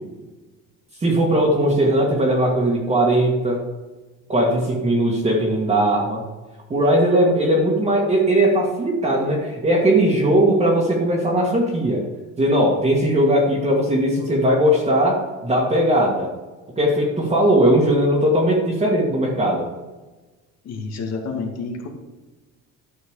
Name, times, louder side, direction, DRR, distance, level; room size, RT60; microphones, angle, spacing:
voice 1, 1.0-3.6 4.3-6.2 6.7-12.0 12.4-15.2 15.4-16.3 16.8-19.7, right 1 dB, 20° right, -3 dB, 1.9 m, -19 dB
voice 2, 20.6-21.9, left 4 dB, 55° left, 2 dB, 2.2 m, -29 dB
12.5 x 6.4 x 5.0 m, 1.2 s
cardioid pair, 140°, 30 cm